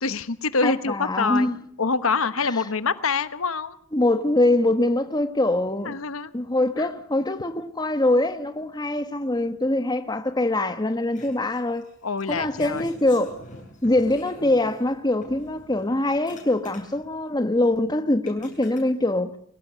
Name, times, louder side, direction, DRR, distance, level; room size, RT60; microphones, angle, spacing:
voice 1, 0.0-1.5 1.8-3.8 5.8-6.3 6.8-6.9 12.0-12.9, left 4 dB, 90° left, 1.1 m, -25 dB
voice 2, 0.6-1.6 3.9-6.0 6.3-11.8 12.3-13.4 13.8-19.4, left 1 dB, 20° left, 1.2 m, -23 dB
sound 1, 11.1-14.9 15.2-17.1 17.7-17.8 18.3-18.8, left 1 dB, 40° left, 6.7 m, -45 dB
22.5 x 17.5 x 8.2 m
head